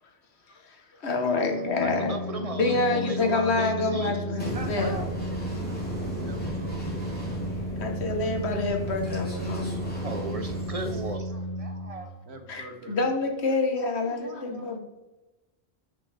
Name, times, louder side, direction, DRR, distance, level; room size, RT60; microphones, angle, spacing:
voice 1, 1.0-2.2 2.5-5.1 7.8-9.9 12.5-14.8, left 3 dB, 85° left, 4 dB, 1.5 m, -27 dB
Organ, 1.6-12.4, right 1 dB, 60° left, 1.5 m, -34 dB
voice 2, 1.8-4.2 4.5-5.0 6.0-6.2 10.0-12.1 14.0-14.8, right 2 dB, 35° right, 6 dB, 0.8 m, -36 dB
sound 1, 4.4-11.1, equal, 10° left, 3.1 m, -36 dB
voice 3, 5.8-8.0 10.9-11.3 12.2-13.2, right 2 dB, 80° right, 5 dB, 1.4 m, -46 dB
10.5 x 6.0 x 3.4 m, 1.1 s
omnidirectional pair, 1.1 m